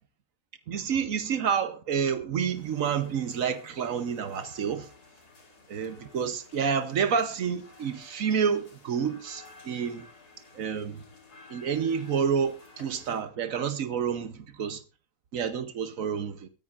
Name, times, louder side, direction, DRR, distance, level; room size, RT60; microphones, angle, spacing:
voice 1, 0.7-4.9 5.7-10.0 10.5-11.0 11.5-14.8 15.3-16.5, right 7 dB, 60° right, 1.3 m, -29 dB
sound 1, 2.5-13.2, left 3 dB, 90° left, 3.2 m, -54 dB
22.5 x 9.1 x 2.5 m
omnidirectional pair, 1.6 m